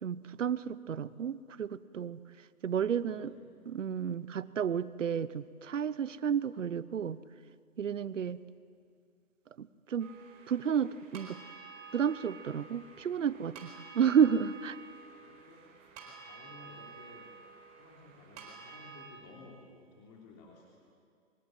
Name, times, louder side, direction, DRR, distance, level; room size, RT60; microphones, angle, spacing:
voice 1, 0.0-2.2 2.6-3.3 3.7-7.2 7.8-8.4 9.6-10.1 10.5-11.4 11.9-14.8, right 8 dB, 60° right, 17 dB, 1.0 m, -31 dB
voice 2, 2.9-3.5 8.5-8.6 15.2-17.3 17.7-20.9, left 3 dB, 30° left, -2 dB, 3.4 m, -56 dB
Campanes Asil Vilallonga, 10.0-19.1, right 5 dB, 25° right, 4.5 m, -51 dB
24.0 x 22.0 x 9.2 m, 2.2 s
hypercardioid pair, 150°, 43 cm